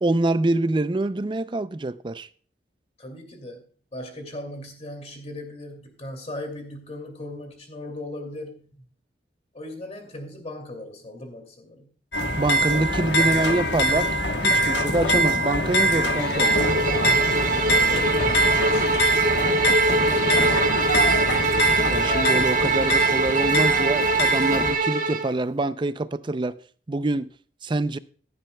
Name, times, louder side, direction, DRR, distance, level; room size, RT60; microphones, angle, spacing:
voice 1, 0.0-2.3 12.4-14.2 14.4-16.5 21.8-26.5 26.9-27.3 27.6-28.0, right 2 dB, 25° right, 0.4 m, -25 dB
voice 2, 3.0-8.7 9.5-12.0 17.5-20.7, left 1 dB, 35° left, 2.6 m, -39 dB
sound 1, 12.1-24.7, right 1 dB, 75° left, 1.3 m, -23 dB
Bowed string instrument, 16.2-25.3, right 3 dB, 45° right, 1.2 m, -23 dB
15.5 x 10.5 x 2.3 m
head